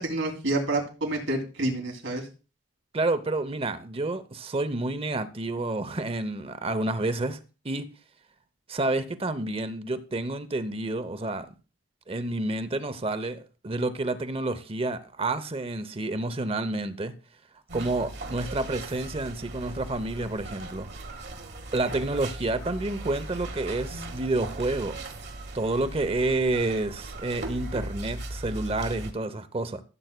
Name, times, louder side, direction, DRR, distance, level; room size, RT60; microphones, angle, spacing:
voice 1, 0.0-2.2, right 2 dB, 90° right, 2.7 m, -28 dB
voice 2, 2.9-7.4 7.6-7.9 8.7-11.5 12.1-17.1 17.7-20.9 21.1-21.2 21.7-25.1 25.5-29.8, right 2 dB, 30° right, 0.7 m, -29 dB
sound 1, 17.7-29.1, right 2 dB, 60° right, 1.5 m, -38 dB
15.0 x 7.9 x 2.2 m
head